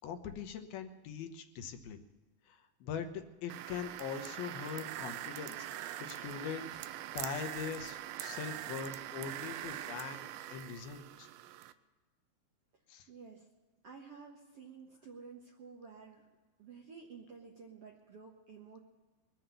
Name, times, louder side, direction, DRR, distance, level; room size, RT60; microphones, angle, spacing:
voice 1, 0.0-2.0 2.5-5.7 6.0-6.7 7.1-10.2 10.5-11.3 12.9-13.1, left 7 dB, 75° left, 7 dB, 2.8 m, -42 dB
sound 1, 3.5-11.7, right 13 dB, 80° right, 2.3 m, -43 dB
voice 2, 13.1-13.5 13.8-16.3 16.6-18.8, right 5 dB, 60° right, -1 dB, 1.6 m, -52 dB
22.5 x 7.8 x 6.8 m, 1.3 s
omnidirectional pair, 4.5 m